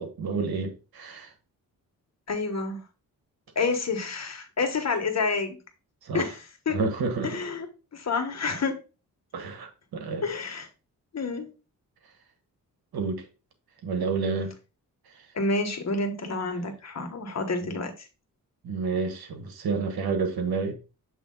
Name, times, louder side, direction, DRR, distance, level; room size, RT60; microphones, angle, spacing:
voice 1, 0.0-1.3 6.0-6.3 6.7-7.3 9.3-10.2 12.9-13.2 13.8-14.5 18.6-20.7, right 4 dB, 85° right, 1.5 m, -29 dB
voice 2, 2.3-2.8 3.5-5.6 6.1-6.4 6.6-6.8 7.2-7.7 7.9-8.8 10.2-10.7 11.1-11.5 15.3-18.1, left 3 dB, 45° left, 1.5 m, -28 dB
7.6 x 3.3 x 3.9 m
cardioid pair, 75°, 36 cm